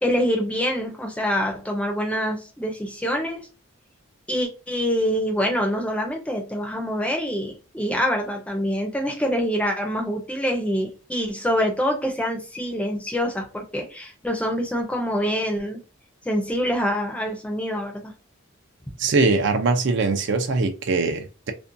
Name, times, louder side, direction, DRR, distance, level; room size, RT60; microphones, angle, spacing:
voice 1, 0.0-3.5 4.3-15.8 16.3-18.1, equal, 5° left, 0.5 m, -25 dB
voice 2, 19.0-21.5, right 3 dB, 55° right, 0.4 m, -22 dB
2.5 x 2.1 x 2.5 m
head